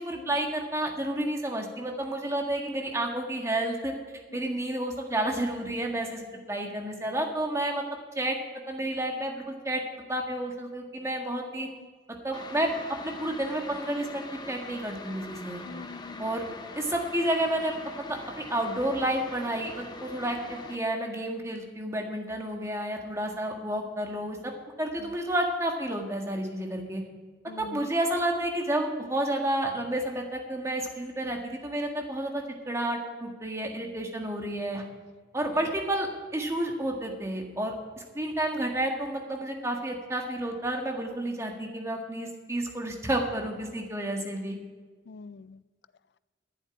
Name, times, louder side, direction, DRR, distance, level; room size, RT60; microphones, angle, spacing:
voice 1, 0.0-3.9 4.3-7.8 8.1-8.4 8.7-9.8 10.1-11.7 12.2-12.7 13.0-15.6 16.2-16.5 16.7-17.7 18.0-24.5 24.8-27.0 27.6-34.8 35.3-44.6, right 1 dB, 15° right, 2 dB, 1.6 m, -30 dB
voice 2, 11.6-11.9 15.6-16.3 25.0-25.1 27.5-27.9 45.1-45.6, left 4 dB, 60° left, 18 dB, 0.4 m, -44 dB
sound 1, 12.3-20.8, left 3 dB, 25° left, 0.8 m, -43 dB
11.0 x 7.7 x 9.7 m, 1.5 s
head